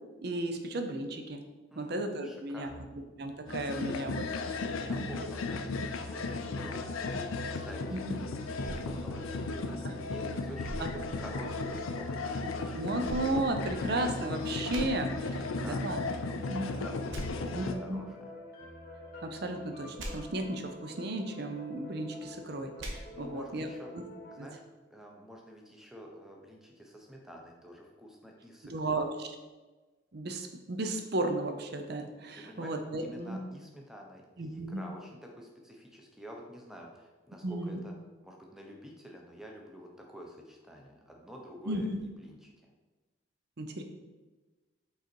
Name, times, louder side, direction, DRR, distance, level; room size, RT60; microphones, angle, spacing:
voice 1, 0.2-1.4 1.7-2.7 3.2-5.1 7.9-8.2 9.8-9.9 10.8-10.9 12.7-16.0 16.5-16.7 17.5-18.0 19.2-23.7 24.4-24.5 28.6-29.3 30.1-33.4 34.4-34.8 37.4-37.8 41.7-42.0 43.6-43.8, right 2 dB, 50° right, 6 dB, 0.6 m, -34 dB
voice 2, 1.7-2.9 4.6-13.0 15.3-18.3 23.1-23.9 24.3-24.6 24.9-29.0 32.3-32.7 33.0-37.9 38.2-42.5, equal, ahead, 0 dB, 0.7 m, -49 dB
sound 1, 3.5-17.7, left 3 dB, 85° left, 0.5 m, -35 dB
sound 2, 6.1-24.5, left 1 dB, 45° left, 0.9 m, -48 dB
sound 3, 8.6-10.0 10.6-11.9 13.0-14.2 14.7-14.8 17.1-17.2 20.0-20.1 22.8-22.9, equal, 70° right, 1.1 m, -43 dB
5.4 x 3.9 x 4.5 m, 1.2 s
head